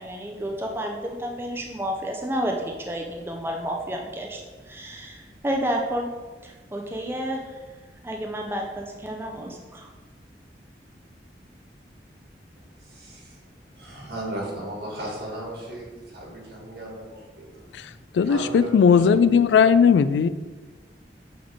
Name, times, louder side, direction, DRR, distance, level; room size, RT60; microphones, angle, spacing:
voice 1, 0.0-4.4 4.7-6.1 6.4-7.4 8.0-9.9, equal, 15° right, 0 dB, 0.5 m, -30 dB
voice 2, 12.8-13.4 13.7-17.9 18.2-19.0, right 1 dB, 75° right, -3 dB, 2.0 m, -36 dB
voice 3, 18.1-20.3, left 6 dB, 85° left, 14 dB, 0.3 m, -17 dB
8.6 x 3.8 x 3.5 m, 1.3 s
head